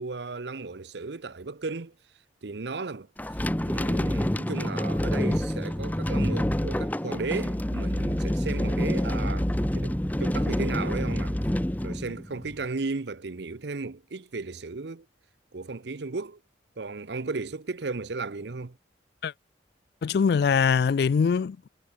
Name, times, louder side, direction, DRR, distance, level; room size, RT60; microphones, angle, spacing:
voice 1, 0.0-1.9 2.4-3.4 3.6-9.5 9.7-11.4 11.8-15.1 15.5-16.4 16.8-18.8, right 3 dB, 65° right, 0.7 m, -35 dB
sound 1, 3.2-12.6, equal, 10° left, 0.6 m, -27 dB
voice 2, 20.0-21.7, left 6 dB, 55° left, 0.3 m, -23 dB
head